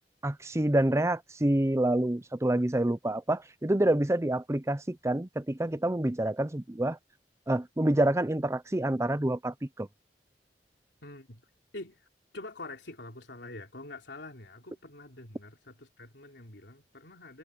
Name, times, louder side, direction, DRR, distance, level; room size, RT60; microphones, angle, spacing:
voice 1, 0.2-7.0 7.5-9.9, right 1 dB, 15° right, 0.7 m, -27 dB
voice 2, 11.0-11.4 11.7-12.1 12.3-17.4, left 2 dB, 85° left, 3.2 m, -45 dB
head